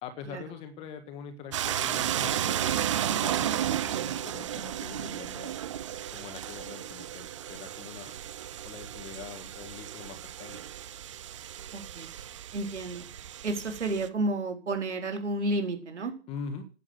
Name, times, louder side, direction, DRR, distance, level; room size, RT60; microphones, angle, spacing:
voice 1, 0.0-5.5 6.1-8.1 8.6-10.6 16.3-16.6, left 6 dB, 15° left, 9 dB, 1.5 m, -43 dB
sound 1, 1.5-14.1, right 11 dB, 30° right, 0.6 m, -33 dB
voice 2, 11.7-12.1 12.5-13.0 13.4-16.1, right 2 dB, 85° right, 5 dB, 4.5 m, -31 dB
11.0 x 8.6 x 8.1 m, 0.36 s
hypercardioid pair, 160°, 34 cm